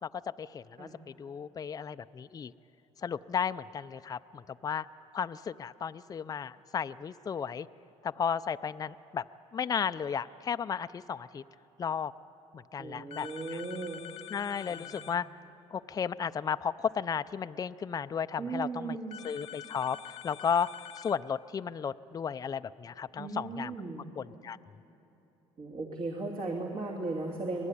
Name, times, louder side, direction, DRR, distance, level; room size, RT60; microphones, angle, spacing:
voice 1, 0.0-2.5 3.0-4.9 5.1-7.7 8.0-9.2 9.5-11.4 11.8-12.1 12.5-13.6 14.3-15.3 15.7-19.0 19.2-20.7 21.0-23.7 24.2-24.6, left 7 dB, 30° left, 12 dB, 0.5 m, -34 dB
voice 2, 12.8-14.0 14.6-15.2 18.4-19.2 23.2-24.1 25.6-27.7, right 3 dB, 50° right, 0 dB, 2.7 m, -37 dB
sound 1, 13.1-15.2 19.1-21.2, left 9 dB, 55° left, 0.9 m, -46 dB
25.0 x 19.0 x 9.8 m, 3.0 s
cardioid pair, 100°, 12 cm